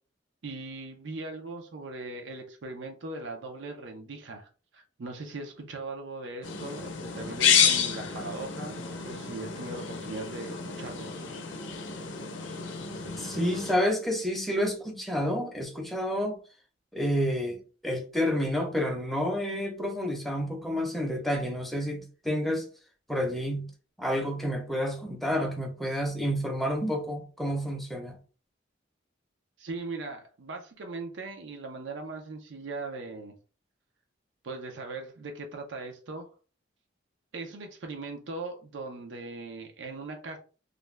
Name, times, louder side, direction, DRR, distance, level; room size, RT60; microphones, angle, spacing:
voice 1, 0.4-11.1 29.6-33.3 34.4-36.3 37.3-40.4, right 3 dB, 80° right, 0.5 m, -39 dB
sound 1, 6.4-13.7, left 7 dB, 85° left, 0.5 m, -30 dB
voice 2, 13.2-16.4 16.9-22.7 23.1-23.7 24.0-28.2, equal, ahead, 0.6 m, -29 dB
2.4 x 2.1 x 3.2 m
head